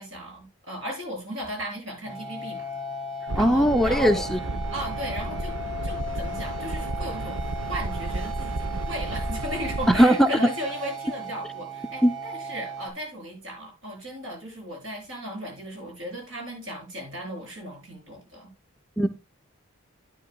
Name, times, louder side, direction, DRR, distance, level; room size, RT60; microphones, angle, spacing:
voice 1, 0.0-2.6 3.3-4.3 4.7-5.5 5.8-7.4 7.7-18.5, equal, 65° right, 7.7 m, -36 dB
sound 1, 2.0-12.9, right 1 dB, 20° right, 7.0 m, -36 dB
voice 2, 3.3-4.4 9.9-10.3 12.0-12.1 19.0-19.1, equal, ahead, 0.5 m, -19 dB
sound 2, 3.3-10.0, right 2 dB, 90° right, 0.8 m, -32 dB
13.5 x 9.9 x 2.2 m
head